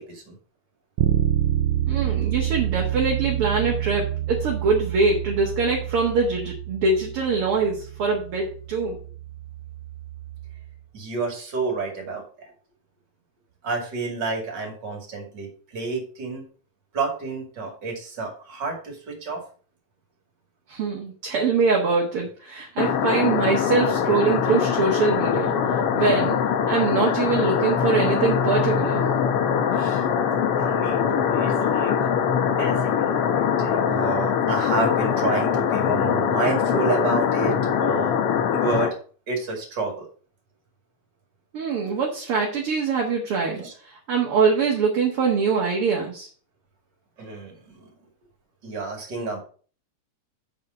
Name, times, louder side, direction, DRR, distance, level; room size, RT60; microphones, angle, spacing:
Bass guitar, 1.0-10.8, right 12 dB, 75° right, 1.9 m, -28 dB
voice 1, 1.9-9.0 20.7-25.5 25.9-26.4 26.7-29.0 41.5-46.3, right 4 dB, 50° right, 0 dB, 1.9 m, -23 dB
voice 2, 10.9-12.5 13.6-16.4 16.9-19.4 29.7-30.0 30.6-32.1 32.6-38.2 38.5-39.0 39.3-40.1 43.6-43.7 47.2-47.9 48.6-49.4, right 4 dB, 35° right, 2 dB, 2.7 m, -30 dB
Underwater Beneath Waterfall or Rain (Loopable), 22.8-38.9, left 7 dB, 70° left, 1.4 m, -22 dB
6.7 x 5.5 x 6.3 m, 0.41 s
omnidirectional pair, 3.8 m